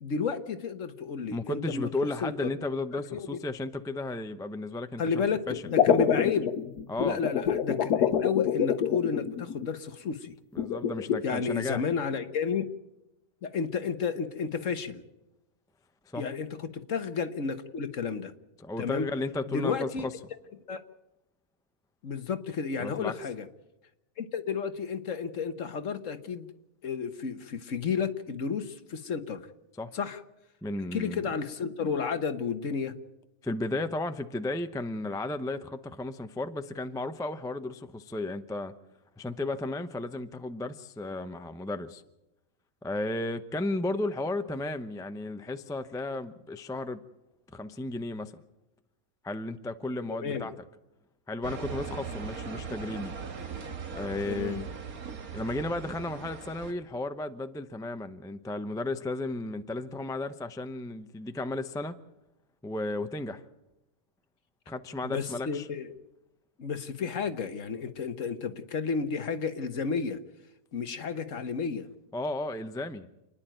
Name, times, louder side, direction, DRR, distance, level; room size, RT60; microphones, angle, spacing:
voice 1, 0.0-1.9 2.2-2.5 3.1-3.3 5.0-6.5 7.0-10.3 11.2-12.7 13.4-15.0 16.1-18.3 18.8-19.1 19.5-20.1 20.7-20.8 22.0-23.5 24.2-26.5 26.8-29.5 29.9-30.2 30.9-32.9 50.2-50.5 54.3-54.6 65.0-65.9 66.6-70.2 70.7-71.9, left 5 dB, 55° left, 10 dB, 1.5 m, -32 dB
voice 2, 1.3-5.6 6.9-7.2 10.5-11.8 16.1-16.3 18.6-20.1 22.8-23.1 29.8-29.9 30.6-31.3 33.4-38.7 39.2-42.0 42.8-47.0 47.5-48.4 49.2-50.5 51.3-53.1 53.9-54.7 55.3-62.0 62.6-63.4 64.7-65.7 72.1-73.1, left 2 dB, 5° left, 9 dB, 0.5 m, -34 dB
sound 1, 5.5-9.7 10.6-11.2, left 8 dB, 90° left, 1.4 m, -26 dB
sound 2, 51.4-56.7, right 5 dB, 70° right, 2.1 m, -39 dB
28.5 x 10.5 x 9.1 m, 0.96 s
omnidirectional pair, 1.6 m